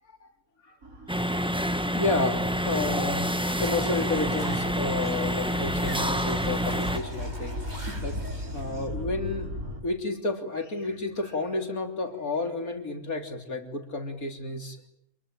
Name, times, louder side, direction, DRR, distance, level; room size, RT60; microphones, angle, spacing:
sound 1, 0.8-9.8, left 1 dB, 70° right, 4.9 m, -38 dB
sound 2, 1.1-7.0, equal, 5° right, 1.0 m, -28 dB
voice 1, 1.9-7.6 8.0-8.2 8.5-9.5 9.8-14.8, left 3 dB, 75° left, 4 dB, 4.0 m, -31 dB
sound 3, 3.2-8.9, right 1 dB, 30° right, 4.8 m, -44 dB
27.5 x 22.0 x 8.9 m, 0.75 s
omnidirectional pair, 1.5 m